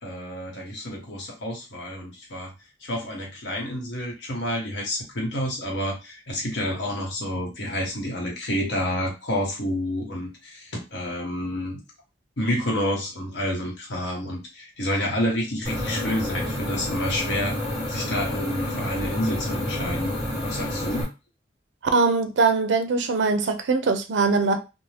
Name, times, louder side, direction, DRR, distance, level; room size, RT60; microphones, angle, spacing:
voice 1, 0.0-2.5 2.8-11.8 12.4-17.6 17.9-20.2 20.4-21.1, equal, 85° left, 1.1 m, -29 dB
sound 1, 15.6-21.0, left 1 dB, 20° left, 1.2 m, -29 dB
voice 2, 21.9-24.6, right 4 dB, 80° right, 0.5 m, -21 dB
2.6 x 2.1 x 3.2 m
head